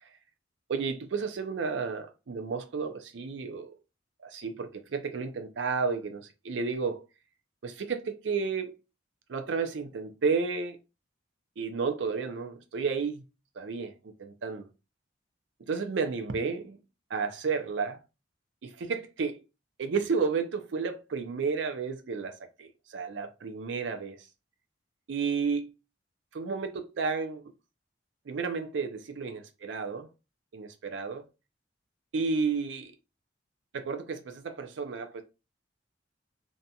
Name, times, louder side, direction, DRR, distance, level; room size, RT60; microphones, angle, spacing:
voice 1, 0.7-3.8 4.2-7.0 7.6-8.7 9.3-10.8 11.6-13.2 13.6-14.7 15.7-16.8 17.1-18.0 18.6-19.4 19.8-24.3 25.1-25.7 26.3-27.5 28.3-30.1 30.5-31.2 32.1-32.9 33.7-35.2, right 5 dB, 70° right, 0.5 m, -32 dB
2.6 x 2.2 x 2.7 m
head